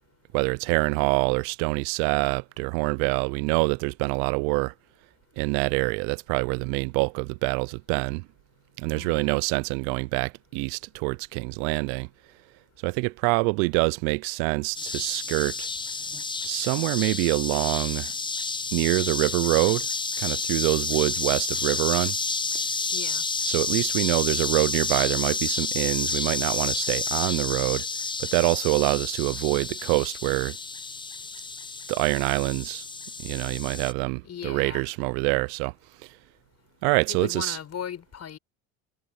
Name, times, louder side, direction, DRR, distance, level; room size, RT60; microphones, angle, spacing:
voice 1, 0.3-4.7 5.4-8.2 8.8-12.1 12.8-15.7 16.4-18.1 18.7-19.9 20.2-22.2 23.4-27.9 28.2-30.6 31.9-32.8 33.2-35.7 36.8-37.6, right 31 dB, 65° right, 0.7 m, -25 dB
voice 2, 8.9-9.4 22.9-23.2 34.2-34.9 37.1-38.4, left 9 dB, 40° left, 6.2 m, -37 dB
sound 1, 14.7-33.9, left 4 dB, 10° left, 0.8 m, -30 dB
hypercardioid pair, 80°, 41 cm